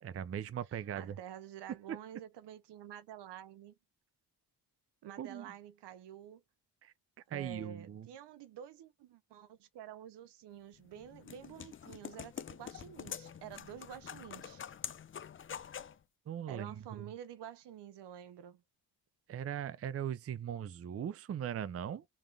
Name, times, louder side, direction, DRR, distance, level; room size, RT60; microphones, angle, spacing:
voice 1, 0.0-1.2 1.9-2.0 5.2-5.5 6.8-6.9 7.3-8.1 16.3-17.1 19.3-22.0, right 9 dB, 35° right, 0.5 m, -39 dB
voice 2, 1.0-3.7 5.0-6.4 7.3-14.6 16.5-18.6, right 10 dB, 75° right, 0.8 m, -49 dB
sound 1, 10.7-16.0, left 8 dB, 30° left, 0.5 m, -46 dB
3.6 x 3.5 x 3.3 m
cardioid pair, 90°, 42 cm